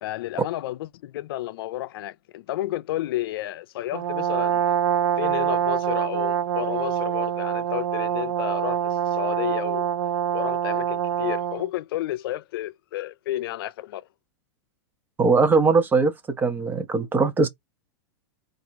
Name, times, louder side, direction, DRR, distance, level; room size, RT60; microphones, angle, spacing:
voice 1, 0.0-4.7 5.2-9.9 10.3-14.0, left 15 dB, 65° left, 0.5 m, -31 dB
Brass instrument, 3.9-11.7, right 9 dB, 70° right, 0.5 m, -25 dB
voice 2, 15.2-17.5, right 4 dB, 15° right, 0.8 m, -20 dB
3.9 x 2.6 x 4.5 m
supercardioid pair, 145°, 13 cm